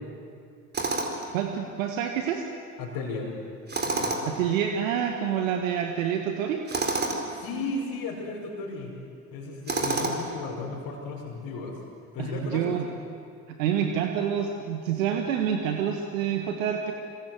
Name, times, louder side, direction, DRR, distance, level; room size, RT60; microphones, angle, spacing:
Tools, 0.7-1.3 3.7-4.4 6.7-7.2 9.7-10.4, right 3 dB, 25° right, 4.6 m, -28 dB
voice 1, 1.3-2.4 4.3-6.6 12.2-12.8 13.5-16.9, right 8 dB, 70° right, 4 dB, 1.9 m, -27 dB
voice 2, 2.8-3.4 3.8-4.4 7.3-8.9 9.3-11.8 12.1-12.8, left 3 dB, 55° left, -4 dB, 5.4 m, -35 dB
26.5 x 25.5 x 8.0 m, 2.4 s
figure-of-eight pair, 60°, 41 cm